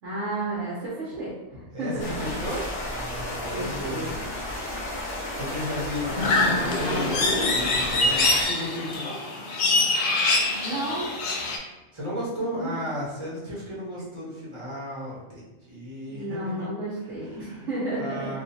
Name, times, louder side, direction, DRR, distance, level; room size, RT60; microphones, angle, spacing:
voice 1, 0.0-2.3 3.5-4.1 6.1-7.3 10.6-11.1 12.5-12.7 16.1-18.3, right 1 dB, 70° right, -9 dB, 1.2 m, -32 dB
voice 2, 1.7-4.1 5.4-7.3 7.5-9.2 11.9-16.7 17.2-17.7 18.0-18.4, equal, 25° right, -7 dB, 0.9 m, -34 dB
sound 1, 2.0-8.4, left 1 dB, 30° left, 0.8 m, -33 dB
sound 2, 6.2-11.6, left 2 dB, 65° left, 0.5 m, -24 dB
3.7 x 2.4 x 2.7 m, 1.1 s
omnidirectional pair, 1.4 m